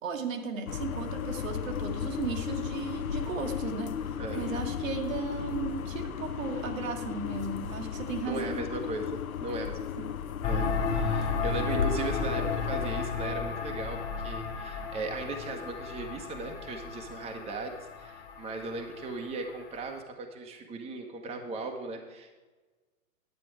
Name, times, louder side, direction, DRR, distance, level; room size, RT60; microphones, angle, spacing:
voice 1, 0.0-4.0 4.3-8.6 10.0-10.1, right 5 dB, 65° right, 4 dB, 1.6 m, -36 dB
sound 1, 0.7-13.0, left 8 dB, 75° left, 0.8 m, -35 dB
voice 2, 8.2-22.3, right 3 dB, 15° right, 2 dB, 1.2 m, -37 dB
sound 2, 10.4-19.9, left 5 dB, 50° left, 1.8 m, -33 dB
10.5 x 8.3 x 4.7 m, 1.3 s
figure-of-eight pair, 110°, 43 cm